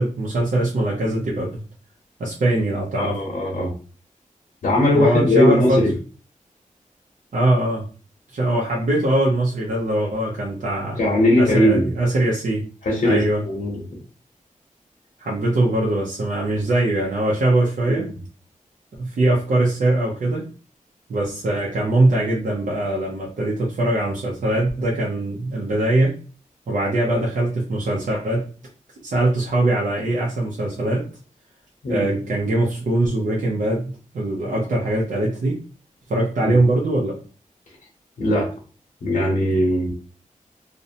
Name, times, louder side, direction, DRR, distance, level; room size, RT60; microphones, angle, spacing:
voice 1, 0.0-1.6 2.2-3.2 4.9-5.8 7.3-7.8 8.3-11.0 11.4-12.6 13.0-13.4 15.2-18.1 19.0-20.5 21.1-26.1 26.7-28.5 29.0-31.1 31.9-35.6 36.1-37.2, right 1 dB, 70° right, -4 dB, 0.6 m, -21 dB
voice 2, 3.0-3.7 4.6-5.9 11.0-11.9 12.8-13.8 17.9-18.0 31.8-32.1 36.4-36.6 38.2-38.5 39.0-39.9, left 1 dB, 75° left, -4 dB, 0.8 m, -19 dB
2.6 x 2.1 x 2.6 m, 0.37 s
wide cardioid pair, 115°, 14 cm